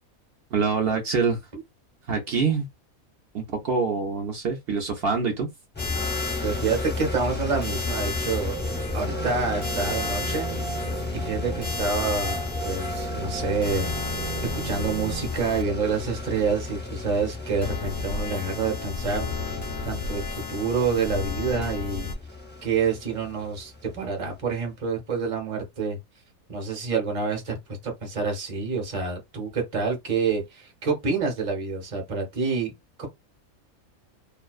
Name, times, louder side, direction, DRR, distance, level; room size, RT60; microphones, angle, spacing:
voice 1, 0.5-1.4 2.1-2.7 3.3-5.5, right 5 dB, 60° right, 0.6 m, -25 dB
sound 1, 5.7-24.4, left 3 dB, 15° left, 0.4 m, -34 dB
sound 2, 5.8-15.6 17.6-22.1, left 4 dB, 55° left, 0.6 m, -34 dB
voice 2, 6.4-8.6 8.9-10.7 11.1-22.1 22.6-26.0 26.5-32.7 33.0-33.1, right 5 dB, 30° right, 0.8 m, -28 dB
sound 3, 8.5-15.2, right 7 dB, 90° right, 1.0 m, -36 dB
2.4 x 2.2 x 2.3 m
omnidirectional pair, 1.5 m